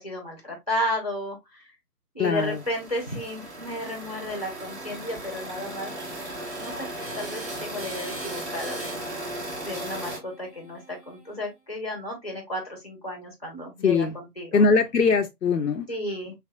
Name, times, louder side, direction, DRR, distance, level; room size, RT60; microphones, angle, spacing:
voice 1, 0.0-1.7 2.1-5.9 6.5-6.9 7.1-9.0 9.6-14.6 15.9-16.3, left 1 dB, 25° left, 0.6 m, -33 dB
voice 2, 2.2-2.6 13.8-14.2 14.5-15.9, left 4 dB, 85° left, 0.6 m, -21 dB
sound 1, 2.3-10.2, right 1 dB, 45° right, 1.5 m, -36 dB
sound 2, 6.3-11.5, right 1 dB, 25° right, 1.0 m, -44 dB
3.3 x 3.1 x 2.4 m
figure-of-eight pair, 150°, 48 cm